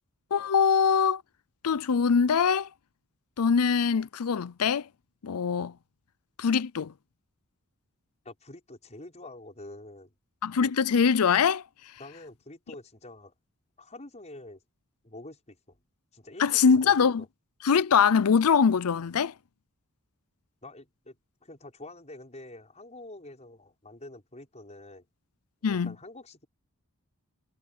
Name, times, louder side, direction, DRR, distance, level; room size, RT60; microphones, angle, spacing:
voice 1, 0.3-1.2 1.6-2.7 3.4-4.9 5.2-5.7 6.4-6.9 10.4-11.6 16.4-17.2 17.6-19.3 25.6-25.9, left 6 dB, 75° left, 0.5 m, -23 dB
voice 2, 8.2-10.1 12.0-13.3 13.8-14.6 15.0-15.8 16.1-17.3 20.6-25.0 25.7-26.5, left 2 dB, 30° left, 5.7 m, -47 dB
head